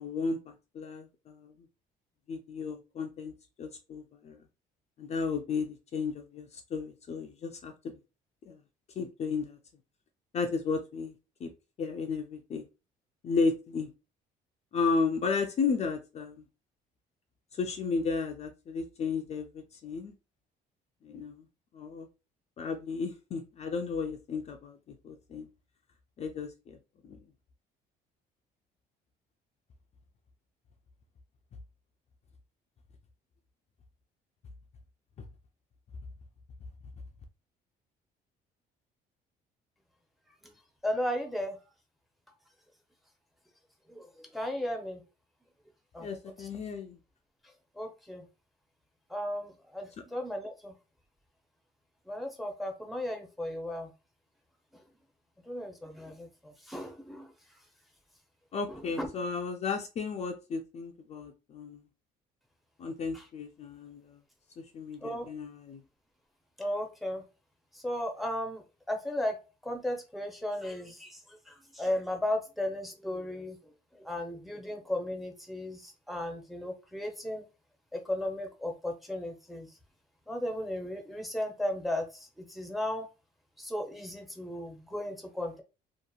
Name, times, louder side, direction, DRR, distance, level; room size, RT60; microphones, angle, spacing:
voice 1, 0.0-1.5 2.3-3.3 3.6-4.4 5.0-7.9 8.5-8.6 9.0-9.6 10.3-11.1 11.4-11.5 11.8-12.7 13.2-13.9 14.7-16.4 17.5-20.1 21.0-21.5 21.7-22.1 22.6-25.5 26.2-26.8 27.0-27.2 46.0-47.0 58.5-61.8 62.8-64.2 64.6-65.8, left 4 dB, 40° left, 0.4 m, -34 dB
voice 2, 40.8-41.6 43.9-45.0 45.9-46.1 46.4-46.5 47.8-48.3 49.1-50.7 52.1-53.9 55.5-57.3 58.7-59.1 65.0-65.3 66.6-67.2 67.7-69.4 69.6-71.2 71.5-73.6 73.9-77.4 77.9-79.7 80.3-83.1 83.6-85.6, left 1 dB, ahead, 0.6 m, -35 dB
2.8 x 2.4 x 2.3 m
cardioid pair, 110°, 17 cm